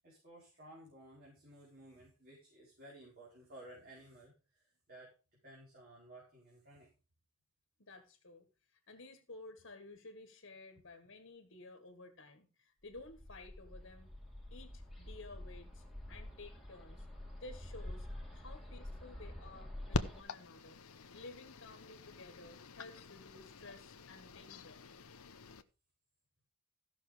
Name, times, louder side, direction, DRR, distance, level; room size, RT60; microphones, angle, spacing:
voice 1, 0.0-6.9, right 1 dB, 40° right, -5 dB, 4.7 m, -56 dB
voice 2, 7.8-14.1 14.5-17.1 17.4-18.1 18.3-20.8 21.1-24.8, left 2 dB, 55° left, 6 dB, 1.6 m, -54 dB
Bird, 12.9-20.2, left 1 dB, ahead, 2.3 m, -48 dB
sound 1, 19.9-25.6, left 3 dB, 75° left, 0.9 m, -44 dB
15.0 x 6.3 x 5.1 m, 0.32 s
head